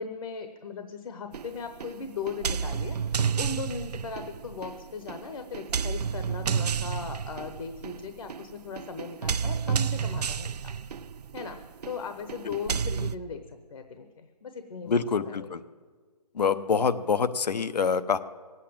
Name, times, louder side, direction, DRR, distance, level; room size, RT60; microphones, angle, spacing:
voice 1, 0.0-10.7 11.3-11.6 11.9-15.5, left 5 dB, 55° left, 8 dB, 1.0 m, -38 dB
sound 1, 1.3-13.2, right 6 dB, 80° right, 0.6 m, -31 dB
voice 2, 14.9-15.6 16.3-18.2, left 5 dB, 85° left, 13 dB, 0.9 m, -26 dB
17.5 x 8.4 x 8.7 m, 1.5 s
hypercardioid pair, 165°, 20 cm